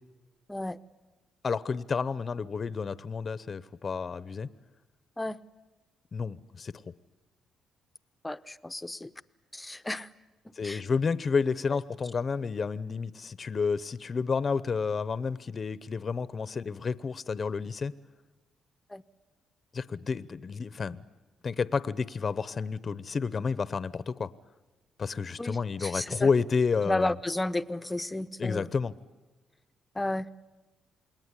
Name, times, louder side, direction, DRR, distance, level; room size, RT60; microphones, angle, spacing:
voice 1, 1.4-4.5 6.1-6.7 10.6-17.9 19.7-21.0 21.4-24.3 25.0-27.1 28.4-28.9, left 5 dB, 40° left, 16 dB, 0.8 m, -30 dB
voice 2, 8.2-9.1 9.5-10.1 10.4-10.8 18.9-19.0 25.4-26.3 26.8-28.7 29.9-30.3, left 1 dB, 15° left, 12 dB, 0.8 m, -33 dB
28.0 x 21.0 x 9.9 m, 1.2 s
cardioid pair, 90°, 0 cm